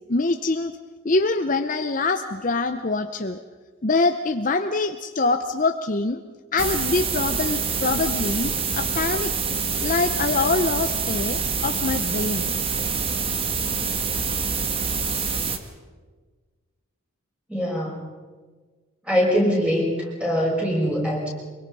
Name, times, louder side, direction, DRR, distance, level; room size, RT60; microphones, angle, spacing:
voice 1, 0.1-0.7 1.0-3.4 3.8-6.2 6.5-9.3 9.8-12.5, left 3 dB, 40° left, 8 dB, 0.7 m, -24 dB
sound 1, 6.6-15.6, right 5 dB, 25° right, 1.4 m, -26 dB
voice 2, 17.5-18.1 19.0-21.3, equal, 5° right, -4 dB, 6.2 m, -23 dB
25.0 x 23.0 x 5.5 m, 1.4 s
head